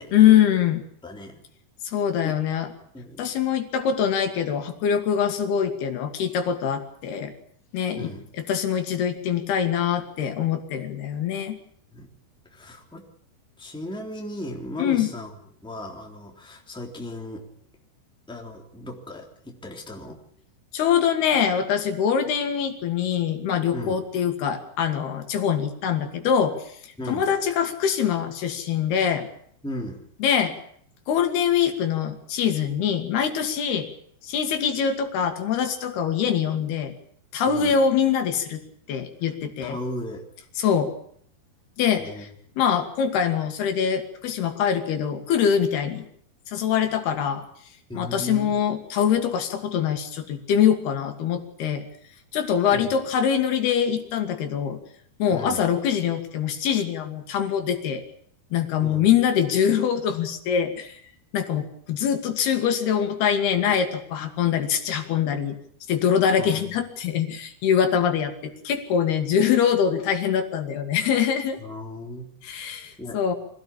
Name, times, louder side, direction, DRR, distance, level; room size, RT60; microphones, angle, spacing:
voice 1, 0.1-0.8 1.8-2.7 3.2-7.3 7.7-8.1 8.5-11.6 14.8-15.1 20.7-29.3 30.2-30.5 31.1-33.9 34.2-37.0 37.3-38.6 38.9-39.8 40.6-40.9 41.8-42.3 42.6-46.0 46.5-47.4 47.9-51.8 52.3-54.8 55.2-58.0 58.5-61.0 61.3-65.6 65.9-71.6 72.4-73.4, left 8 dB, 75° left, 6 dB, 3.9 m, -23 dB
voice 2, 1.0-1.4 2.2-2.4 2.9-3.3 8.0-8.3 11.9-12.1 12.5-13.1 13.6-15.3 15.6-17.4 18.3-20.2 23.7-24.0 27.0-27.3 29.6-30.0 37.5-37.7 39.6-40.2 42.0-42.3 47.9-48.5 52.7-53.0 55.3-55.6 58.8-59.2 66.4-66.7 71.6-72.3 73.0-73.2, left 1 dB, ahead, 1 dB, 2.9 m, -36 dB
24.0 x 17.0 x 8.8 m, 0.63 s
omnidirectional pair, 4.6 m